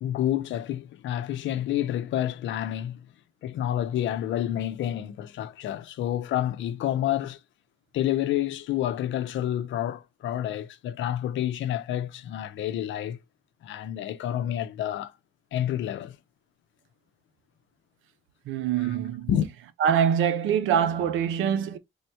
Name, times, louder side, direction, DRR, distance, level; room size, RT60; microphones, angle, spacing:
voice 1, 0.0-3.1 3.4-7.4 7.9-13.2 13.6-15.1 15.5-16.2 18.8-18.9 19.3-19.5, left 11 dB, 75° left, 0.5 m, -29 dB
voice 2, 18.5-19.3 19.8-21.8, right 8 dB, 80° right, 0.5 m, -24 dB
3.4 x 2.2 x 2.8 m
cardioid pair, 90°, 20 cm